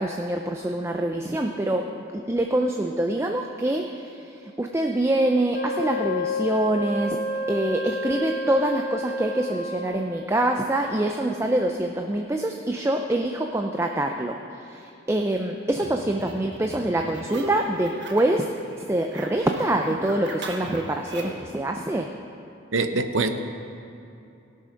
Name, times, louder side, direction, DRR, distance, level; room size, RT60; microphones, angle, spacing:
voice 1, 0.0-7.2 7.5-22.1, right 1 dB, 15° right, 0.4 m, -25 dB
Wind instrument woodwind instrument, 5.5-10.1, left 1 dB, 65° left, 2.6 m, -30 dB
sound 1, 15.8-18.5 18.7-21.5, right 1 dB, 60° right, 1.2 m, -37 dB
voice 2, 22.7-23.3, right 3 dB, 80° right, 0.7 m, -23 dB
17.0 x 6.2 x 5.7 m
head